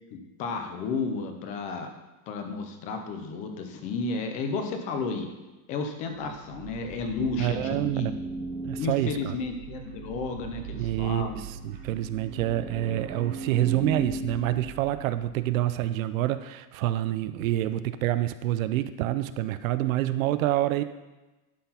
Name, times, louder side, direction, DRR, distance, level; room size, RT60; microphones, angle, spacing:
voice 1, 0.1-1.9 2.3-5.3 5.7-8.1 8.8-11.4, left 4 dB, 20° left, 6 dB, 0.4 m, -32 dB
sound 1, 6.2-15.5, right 3 dB, 20° right, 1.4 m, -38 dB
voice 2, 7.4-8.1 8.6-9.3 10.7-20.8, right 14 dB, 60° right, 12 dB, 0.6 m, -27 dB
11.5 x 4.4 x 5.6 m, 1.1 s
supercardioid pair, 175°, 46 cm